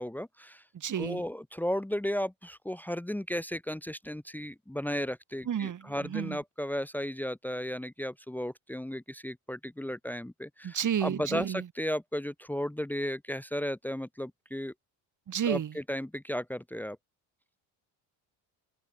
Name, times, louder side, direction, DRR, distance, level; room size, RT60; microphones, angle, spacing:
voice 1, 0.0-0.6 1.0-14.7 15.5-17.0, equal, 5° left, 1.7 m, -34 dB
voice 2, 0.7-1.2 5.5-6.4 10.6-11.6 15.3-15.7, right 9 dB, 45° right, 3.1 m, -31 dB
open air
cardioid pair, 100°, 41 cm